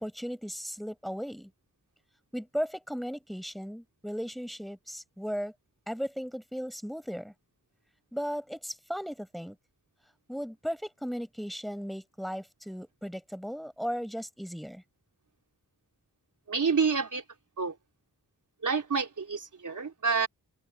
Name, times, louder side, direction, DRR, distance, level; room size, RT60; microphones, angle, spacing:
voice 1, 0.0-1.5 2.3-5.5 5.9-7.3 8.1-9.6 10.3-14.8, equal, ahead, 7.7 m, -36 dB
voice 2, 16.5-17.2 17.6-17.7 18.6-20.3, right 5 dB, 55° right, 3.9 m, -28 dB
open air
wide cardioid pair, 110°, 36 cm